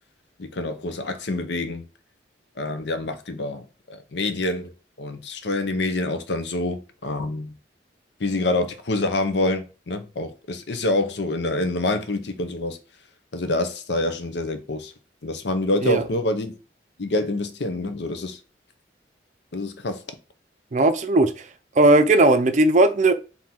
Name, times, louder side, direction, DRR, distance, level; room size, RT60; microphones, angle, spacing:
voice 1, 0.4-1.9 2.6-4.7 5.0-7.5 8.2-12.8 13.3-14.9 15.2-16.5 17.0-18.4 19.5-20.0, left 2 dB, 70° left, 0.8 m, -26 dB
voice 2, 20.7-21.5 21.8-23.1, right 2 dB, 40° right, 0.5 m, -17 dB
3.8 x 2.7 x 4.4 m
head